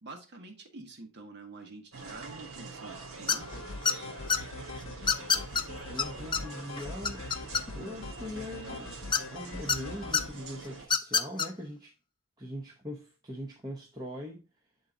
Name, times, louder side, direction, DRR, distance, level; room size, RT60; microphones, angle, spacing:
voice 1, 0.0-3.5, right 3 dB, 55° right, 1.1 m, -47 dB
sound 1, 1.9-10.9, right 4 dB, 85° right, 1.7 m, -45 dB
sound 2, 3.3-3.5 3.9-4.4 5.1-5.6 6.0-6.1 6.3-6.4 6.8-7.9 9.1-9.8 10.1-10.2 10.8-11.5, left 6 dB, 20° left, 0.4 m, -26 dB
sound 3, 3.4-10.3, left 3 dB, 70° left, 0.7 m, -43 dB
voice 2, 5.9-7.3 7.7-9.0 9.3-11.9 12.4-14.4, equal, 20° right, 0.8 m, -41 dB
8.1 x 3.9 x 3.6 m
head